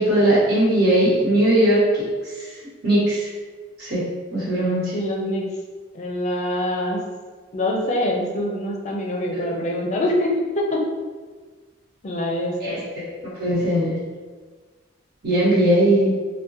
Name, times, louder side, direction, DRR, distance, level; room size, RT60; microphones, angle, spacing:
voice 1, 0.0-2.0 2.8-3.3 3.8-4.0 4.3-4.9 12.6-13.1 13.4-13.9 15.2-16.1, right 1 dB, 55° right, -8 dB, 1.3 m, -19 dB
voice 2, 4.9-5.5 5.9-7.0 7.5-10.8 12.0-12.8, left 1 dB, 40° left, 0 dB, 0.5 m, -24 dB
3.7 x 2.2 x 2.6 m, 1.4 s
head